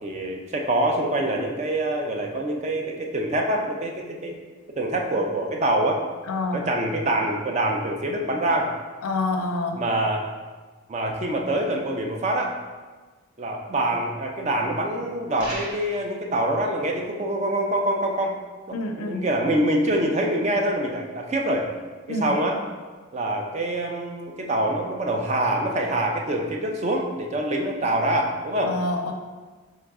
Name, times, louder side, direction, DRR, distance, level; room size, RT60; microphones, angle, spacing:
voice 1, 0.0-4.4 4.8-6.0 6.5-8.7 9.7-10.2 10.9-12.6 13.4-18.3 18.7-21.7 22.1-22.6 23.1-28.8, right 1 dB, 30° right, 1 dB, 0.4 m, -25 dB
voice 2, 6.3-6.6 9.0-9.8 18.7-19.2 22.1-22.3 28.6-29.1, left 2 dB, 85° left, 4 dB, 0.4 m, -27 dB
sound 1, 15.4-16.1, right 1 dB, 90° right, 0.9 m, -36 dB
3.7 x 3.1 x 3.5 m, 1.4 s
head